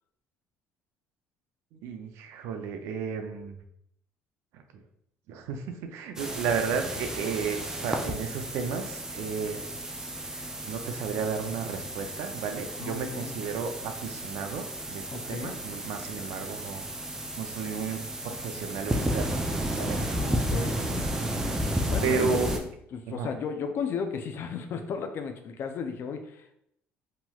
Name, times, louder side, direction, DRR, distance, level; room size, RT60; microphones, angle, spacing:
voice 1, 1.7-3.6 4.5-4.6 5.3-9.6 10.3-16.8 17.4-19.3 19.7-20.0 22.0-22.5 23.1-23.3, right 6 dB, 75° right, 6 dB, 0.4 m, -33 dB
sound 1, 6.2-22.6, right 1 dB, 10° right, 0.4 m, -33 dB
voice 2, 12.8-13.4 15.1-15.6 20.1-21.1 21.9-22.6 22.9-26.5, left 6 dB, 55° left, 7 dB, 0.4 m, -35 dB
2.9 x 2.9 x 2.3 m, 0.74 s
supercardioid pair, 90°, 5 cm